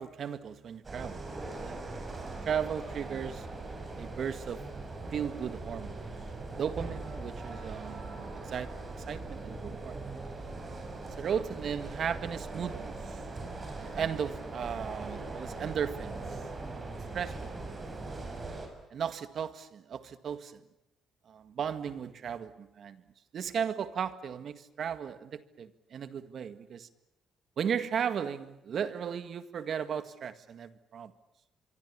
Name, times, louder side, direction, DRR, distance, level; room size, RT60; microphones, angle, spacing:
voice 1, 0.0-1.8 2.4-3.5 4.0-4.6 5.1-6.0 6.6-8.7 9.1-10.0 11.2-13.2 13.8-16.2 17.1-17.6 18.9-20.6 21.3-23.0 23.3-26.9 27.6-31.1, right 7 dB, 60° right, 1.9 m, -36 dB
sound 1, 0.8-18.7, right 3 dB, 30° right, 6.9 m, -40 dB
26.5 x 24.0 x 8.7 m
cardioid pair, 90°, 0 cm